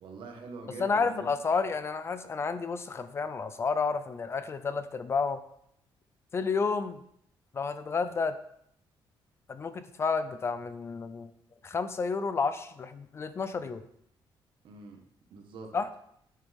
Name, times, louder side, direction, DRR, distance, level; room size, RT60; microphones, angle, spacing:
voice 1, 0.0-1.3 14.6-15.0 15.3-15.7, right 3 dB, 65° right, 3 dB, 1.5 m, -44 dB
voice 2, 0.8-5.4 6.3-7.0 7.5-8.4 9.5-11.3 11.6-13.8 15.7-15.9, left 4 dB, 30° left, 11 dB, 0.5 m, -30 dB
10.0 x 7.5 x 3.6 m, 0.71 s
cardioid pair, 155°, 9 cm